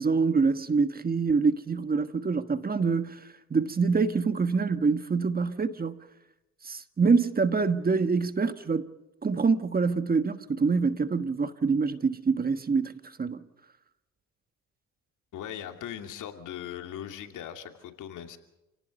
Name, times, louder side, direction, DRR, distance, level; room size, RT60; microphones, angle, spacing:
voice 1, 0.0-3.2 3.5-6.0 6.6-8.9 9.2-13.4, right 4 dB, 30° right, 1.5 m, -25 dB
voice 2, 15.3-18.4, left 10 dB, 80° left, 2.7 m, -39 dB
28.5 x 18.5 x 5.4 m
cardioid pair, 90°, 30 cm